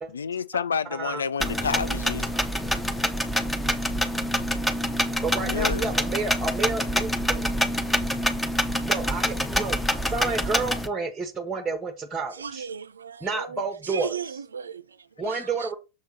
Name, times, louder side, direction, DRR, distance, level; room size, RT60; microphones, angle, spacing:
voice 1, 0.1-2.3 5.4-5.9, left 6 dB, 70° left, 0.3 m, -29 dB
voice 2, 0.9-1.2 2.3-2.8 5.2-7.5 8.8-12.6 13.2-14.1 15.2-15.7, right 4 dB, 10° right, 1.0 m, -30 dB
sound 1, 1.4-10.9, equal, 5° left, 0.7 m, -26 dB
voice 3, 12.3-15.7, right 6 dB, 70° right, 0.4 m, -36 dB
6.6 x 3.5 x 5.4 m
figure-of-eight pair, 90°, 0 cm